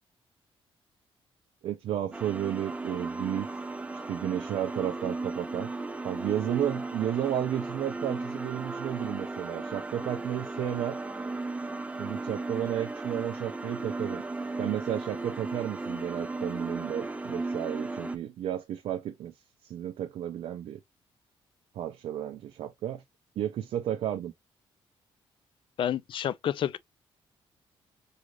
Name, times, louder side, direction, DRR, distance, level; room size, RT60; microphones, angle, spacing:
voice 1, 1.6-3.5 4.1-5.7 6.0-11.0 12.0-14.2 14.6-19.3 19.6-20.8 21.7-23.0 23.4-24.3, right 11 dB, 75° right, 0.5 m, -32 dB
sound 1, 2.1-18.2, right 3 dB, 10° right, 0.4 m, -36 dB
voice 2, 25.8-26.8, left 10 dB, 55° left, 0.4 m, -29 dB
4.8 x 2.5 x 3.1 m
cardioid pair, 115°, 10 cm